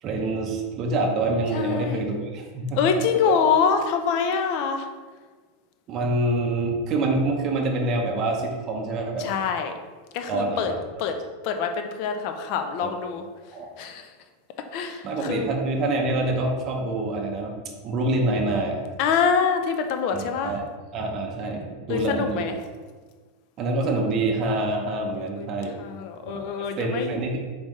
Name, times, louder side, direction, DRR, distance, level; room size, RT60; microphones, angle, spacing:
voice 1, 0.0-2.8 3.3-3.4 5.9-9.3 10.3-10.8 12.8-12.9 13.5-13.7 15.0-17.5 17.8-18.8 20.1-20.6 20.9-22.5 23.6-25.7 26.2-27.4, right 2 dB, 30° right, 0 dB, 0.6 m, -26 dB
voice 2, 1.5-2.1 2.7-4.9 9.2-9.7 10.1-10.7 11.0-11.2 11.4-13.2 13.8-14.1 14.7-15.5 19.0-20.5 21.9-22.6 25.1-25.5 25.8-27.1, left 6 dB, 45° left, 6 dB, 0.5 m, -25 dB
4.2 x 3.6 x 3.1 m, 1.4 s
supercardioid pair, 155°, 0 cm